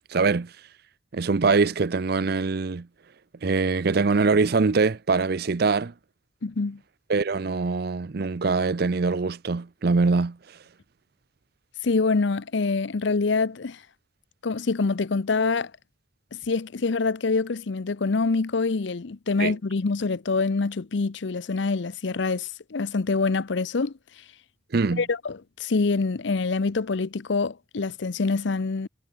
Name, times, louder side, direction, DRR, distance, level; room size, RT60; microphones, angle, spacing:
voice 1, 0.1-0.5 1.1-2.9 3.4-5.9 7.1-10.4 19.4-19.5 24.7-25.0, right 4 dB, 55° right, 0.5 m, -23 dB
voice 2, 6.4-6.8 11.8-13.8 14.4-15.7 16.3-23.9 25.0-28.9, left 4 dB, 70° left, 0.6 m, -25 dB
head